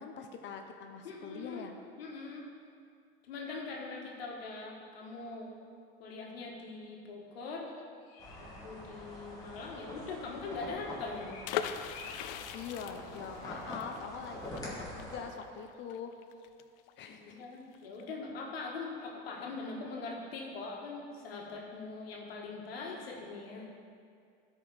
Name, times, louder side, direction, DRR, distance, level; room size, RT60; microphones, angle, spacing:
voice 1, 0.0-1.8 12.5-16.1 17.0-17.4, left 6 dB, 40° left, 5 dB, 0.8 m, -43 dB
voice 2, 1.0-1.7 2.0-2.5 3.2-5.5 6.0-7.7 8.4-11.4 17.0-23.7, left 3 dB, 85° left, -1 dB, 1.7 m, -42 dB
sound 1, 7.7-8.7 11.2-13.5, left 4 dB, 55° left, 1.1 m, -53 dB
sound 2, 8.2-15.2, left 1 dB, 10° left, 2.4 m, -45 dB
sound 3, 11.4-17.1 17.4-17.5 17.7-18.0, left 10 dB, 70° left, 0.6 m, -40 dB
12.5 x 5.4 x 4.2 m, 2.3 s
supercardioid pair, 110°, 29 cm